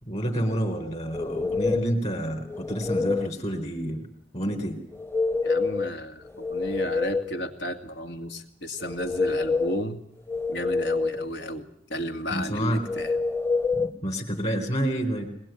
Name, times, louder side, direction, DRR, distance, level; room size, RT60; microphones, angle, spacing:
voice 1, 0.0-4.1 4.3-4.8 12.3-12.9 13.7-15.3, equal, 40° left, 3 dB, 4.1 m, -29 dB
sound 1, 1.1-2.0 2.5-3.3 4.9-5.9 6.3-7.4 8.8-9.8 10.3-11.3 12.9-13.9, left 4 dB, 15° left, 0.9 m, -27 dB
voice 2, 5.4-10.0 10.5-13.2, equal, 80° left, 7 dB, 2.4 m, -33 dB
22.0 x 21.5 x 9.2 m, 0.66 s
head